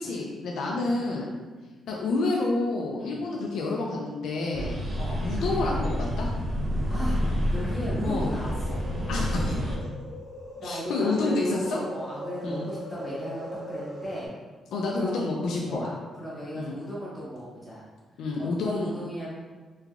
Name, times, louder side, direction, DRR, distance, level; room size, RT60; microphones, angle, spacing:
voice 1, 0.0-1.3 1.9-4.8 5.2-6.3 8.0-8.3 9.1-9.7 10.6-11.8 12.4-12.7 14.7-15.8 16.5-16.8 18.2-18.9, left 3 dB, 90° left, -2 dB, 0.4 m, -29 dB
voice 2, 0.6-1.2 1.6-1.8 3.0-3.2 4.9-5.3 6.9-7.2 7.5-8.8 10.6-14.3 14.9-15.3 15.6-17.9 18.4-19.3, equal, 10° left, -8 dB, 1.1 m, -36 dB
sound 1, 4.5-9.8, equal, 25° right, 0.5 m, -28 dB
sound 2, 6.4-14.3, equal, 35° left, 0.9 m, -41 dB
3.4 x 3.2 x 2.4 m, 1.3 s
cardioid pair, 180°, 0 cm